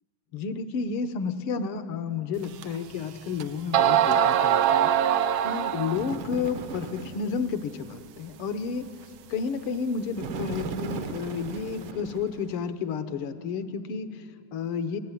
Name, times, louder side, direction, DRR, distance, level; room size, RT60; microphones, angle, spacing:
voice 1, 0.3-4.9 5.4-8.9 9.3-15.0, left 5 dB, 60° left, 12 dB, 1.6 m, -31 dB
sound 1, 2.6-2.7 3.4-3.5 3.7-6.2, right 9 dB, 85° right, 1.1 m, -22 dB
Bird, 5.9-7.3 10.2-12.7, right 3 dB, 60° right, 1.6 m, -37 dB
27.0 x 16.5 x 9.8 m, 3.0 s
omnidirectional pair, 3.3 m